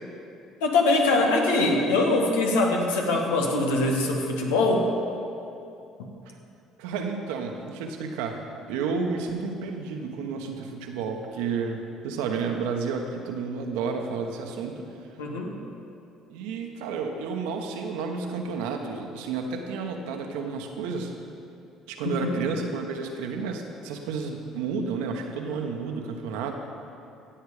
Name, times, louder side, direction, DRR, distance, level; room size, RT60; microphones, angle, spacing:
voice 1, 0.6-4.9 15.2-15.6 22.0-22.3, left 2 dB, 90° left, 1 dB, 1.6 m, -23 dB
voice 2, 6.8-8.4 8.7-11.8 12.0-14.9 16.3-21.1 21.9-26.6, right 5 dB, 80° right, 3 dB, 1.2 m, -31 dB
16.0 x 8.1 x 5.0 m, 2.7 s
hypercardioid pair, 70°, 0 cm